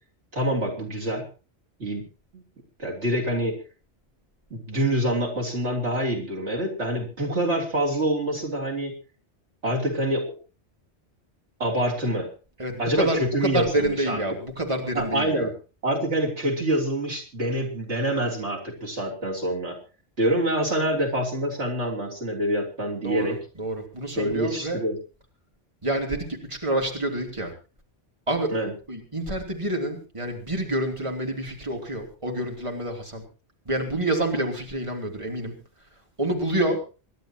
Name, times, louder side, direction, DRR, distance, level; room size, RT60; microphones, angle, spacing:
voice 1, 0.3-1.3 1.8-2.0 2.3-2.4 2.8-3.6 4.5-8.9 9.6-10.4 11.6-12.3 12.8-14.2 14.9-15.5 15.8-19.8 20.2-23.4 24.2-25.0 28.5-28.7, right 1 dB, 90° right, -1 dB, 3.8 m, -26 dB
voice 2, 12.6-15.5 23.0-24.8 25.8-27.5 28.3-28.5 28.9-33.2 33.6-35.5 36.2-36.8, right 1 dB, 25° right, 1 dB, 3.2 m, -28 dB
26.5 x 12.0 x 3.0 m, 0.33 s
omnidirectional pair, 1.1 m